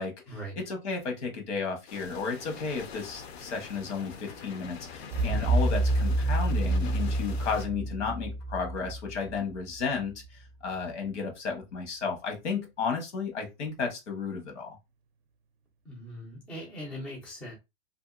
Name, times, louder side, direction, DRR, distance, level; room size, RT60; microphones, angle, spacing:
voice 1, 0.0-10.1 10.6-14.8, left 5 dB, 80° left, 1.3 m, -33 dB
sound 1, 1.9-7.7, left 6 dB, 65° left, 0.7 m, -45 dB
sound 2, 5.1-10.0, right 2 dB, 65° right, 0.5 m, -28 dB
voice 2, 15.8-17.6, equal, 5° left, 0.4 m, -40 dB
2.7 x 2.5 x 2.4 m
supercardioid pair, 165°, 34 cm